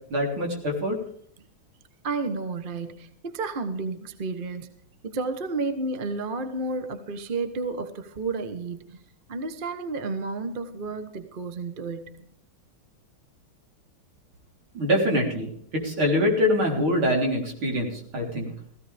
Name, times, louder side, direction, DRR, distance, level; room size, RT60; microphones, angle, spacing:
voice 1, 0.1-1.0 14.7-18.5, left 1 dB, 75° right, 0 dB, 4.5 m, -24 dB
voice 2, 2.0-4.8 5.0-9.0 9.3-12.2, right 3 dB, 30° right, 8 dB, 1.1 m, -31 dB
17.0 x 16.0 x 3.4 m, 0.63 s
omnidirectional pair, 2.3 m